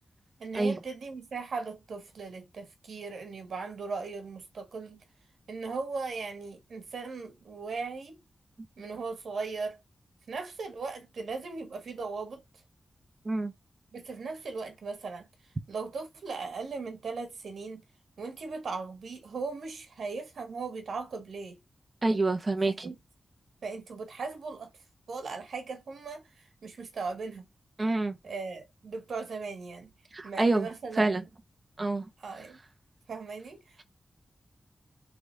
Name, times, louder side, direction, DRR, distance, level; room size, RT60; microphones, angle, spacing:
voice 1, 0.4-5.0 5.5-8.2 8.8-9.8 10.3-12.4 13.9-15.3 15.7-17.8 18.2-21.6 22.7-23.0 23.6-24.7 25.1-27.5 28.2-29.9 30.2-31.0 32.2-32.6 33.1-33.6, right 4 dB, 80° right, 1.4 m, -38 dB
voice 2, 22.0-22.9 27.8-28.2 30.1-30.7 31.0-31.2 31.8-32.1, right 2 dB, 30° right, 0.6 m, -27 dB
3.8 x 3.2 x 3.3 m
wide cardioid pair, 130°, 0 cm